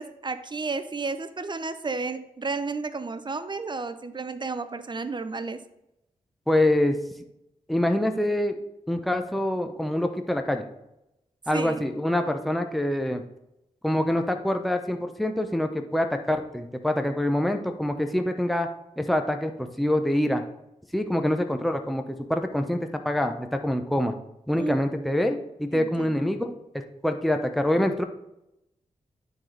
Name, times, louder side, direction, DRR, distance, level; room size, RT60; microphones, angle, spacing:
voice 1, 0.0-5.6 11.5-11.8 24.6-25.0 25.7-26.3, right 4 dB, 35° right, 11 dB, 0.5 m, -32 dB
voice 2, 6.5-7.0 7.7-8.6 8.9-10.7 11.5-13.2 13.8-18.7 19.0-20.4 20.9-22.0 22.3-24.1 24.5-28.0, left 1 dB, ahead, 6 dB, 0.7 m, -25 dB
12.0 x 4.0 x 3.3 m, 0.88 s
cardioid pair, 55°, 13 cm